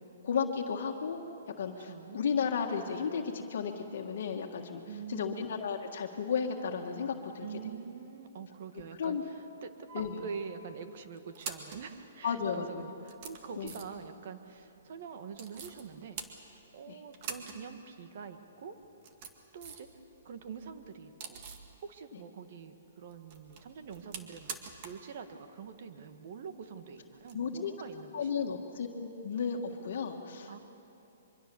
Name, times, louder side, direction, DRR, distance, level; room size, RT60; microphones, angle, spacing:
voice 1, 0.2-1.2 1.6-4.8 5.1-7.5 9.0-9.2 9.9-10.2 12.2-12.8 13.6-13.7 16.9-17.0 27.3-27.7 28.1-30.6, left 6 dB, 65° left, 2 dB, 1.6 m, -34 dB
voice 2, 1.8-2.2 4.9-5.4 7.4-16.2 16.7-18.8 19.5-19.9 20.2-21.4 21.8-24.6 24.8-28.3 30.5-30.6, right 6 dB, 55° right, 8 dB, 1.7 m, -45 dB
sound 1, 9.9-10.5 11.2-11.9 12.6-12.7 13.0-14.1 15.3-15.8 16.2-16.8 17.1-17.6 17.9-18.0 18.8-19.9 20.3-21.7 23.1-25.1 25.3-25.4 27.2-27.3, right 6 dB, 40° right, 2.0 m, -45 dB
24.0 x 23.5 x 7.0 m, 3.0 s
hypercardioid pair, 150°, 0 cm